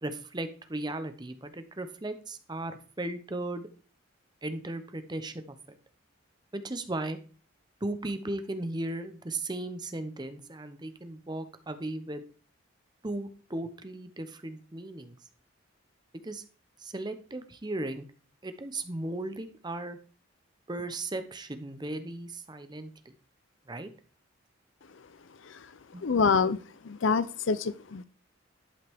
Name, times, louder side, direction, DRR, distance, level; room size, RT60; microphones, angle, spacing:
voice 1, 0.0-3.7 4.4-5.8 6.5-7.2 7.8-12.2 13.0-15.1 16.2-16.4 16.8-18.1 18.4-20.0 20.7-23.1 23.7-23.9 25.9-26.1, right 2 dB, 20° right, 9 dB, 0.8 m, -36 dB
voice 2, 26.0-26.6 26.8-28.0, left 5 dB, 70° left, 16 dB, 0.5 m, -26 dB
11.0 x 5.7 x 3.5 m, 0.38 s
head